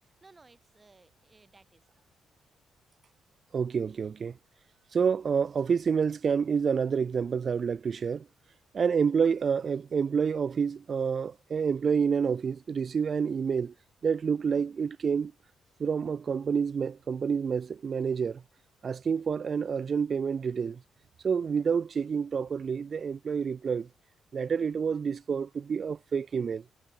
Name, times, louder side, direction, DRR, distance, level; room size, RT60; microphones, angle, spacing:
voice 1, 0.2-1.8 18.0-18.5, right 3 dB, 20° right, 2.9 m, -59 dB
voice 2, 3.5-4.4 4.9-8.3 8.7-13.7 14.0-15.3 15.8-18.4 18.8-20.8 21.2-23.9 24.3-26.6, right 6 dB, 35° right, 0.4 m, -28 dB
cardioid pair, 155°, 0 cm